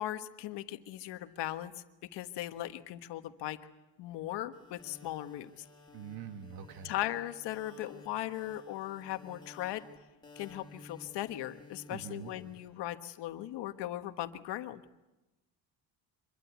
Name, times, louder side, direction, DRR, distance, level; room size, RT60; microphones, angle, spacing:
voice 1, 0.0-1.8 2.1-3.6 4.0-5.6 6.8-9.8 10.4-14.8, left 13 dB, 80° left, 9 dB, 1.5 m, -38 dB
sound 1, 4.5-12.7, left 2 dB, 10° left, 6.0 m, -55 dB
voice 2, 5.9-6.9 11.9-12.3, right 8 dB, 60° right, 9 dB, 1.7 m, -44 dB
25.0 x 22.0 x 8.3 m, 1.0 s
cardioid pair, 150°, 41 cm